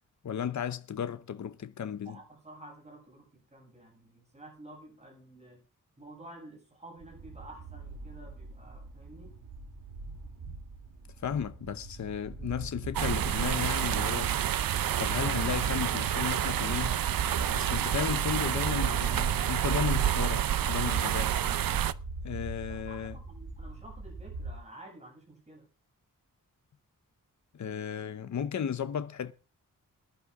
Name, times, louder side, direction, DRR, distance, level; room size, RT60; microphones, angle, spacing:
voice 1, 0.2-2.2 10.5-10.6 11.2-14.4 15.0-17.0 17.5-21.3 22.2-23.2 27.5-29.3, left 8 dB, 55° left, 0.8 m, -34 dB
voice 2, 2.0-5.6 6.0-9.3 22.7-25.7, right 1 dB, 20° right, 7.7 m, -51 dB
sound 1, 7.0-24.6, right 3 dB, 75° right, 2.6 m, -42 dB
sound 2, 12.9-21.9, right 10 dB, 90° right, 0.7 m, -28 dB
20.5 x 11.0 x 3.7 m
wide cardioid pair, 160°, 33 cm